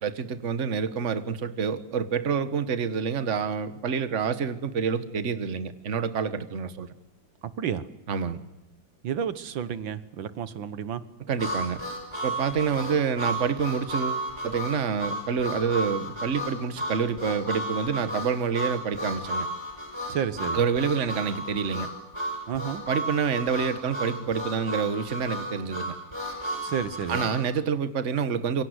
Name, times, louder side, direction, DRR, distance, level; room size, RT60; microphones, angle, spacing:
voice 1, 0.0-6.9 8.1-8.4 11.3-11.8 12.2-19.5 20.5-21.9 22.9-25.9 27.1-28.6, right 6 dB, 40° right, 12 dB, 1.6 m, -27 dB
voice 2, 9.0-11.0 20.1-20.6 22.5-22.8 26.6-27.3, right 8 dB, 80° right, 14 dB, 1.9 m, -31 dB
Harmonica, 11.4-27.4, equal, 15° right, 6.8 m, -33 dB
27.5 x 23.5 x 8.1 m, 0.93 s
omnidirectional pair, 2.1 m